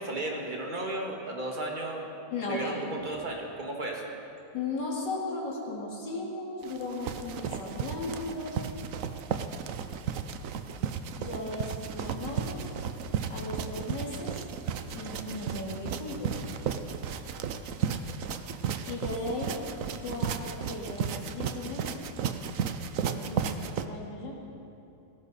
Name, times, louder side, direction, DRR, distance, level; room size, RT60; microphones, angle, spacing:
voice 1, 0.0-2.1 2.4-4.1, right 2 dB, 30° right, 0 dB, 2.0 m, -34 dB
voice 2, 2.3-2.8 4.5-9.0 11.2-12.6 13.3-14.3 14.9-16.4 18.8-19.6 19.9-22.0 23.1-24.4, left 2 dB, 85° left, -3 dB, 2.9 m, -36 dB
sound 1, 6.6-23.9, right 7 dB, 60° right, 0.9 m, -34 dB
19.0 x 17.0 x 4.2 m, 2.8 s
omnidirectional pair, 1.8 m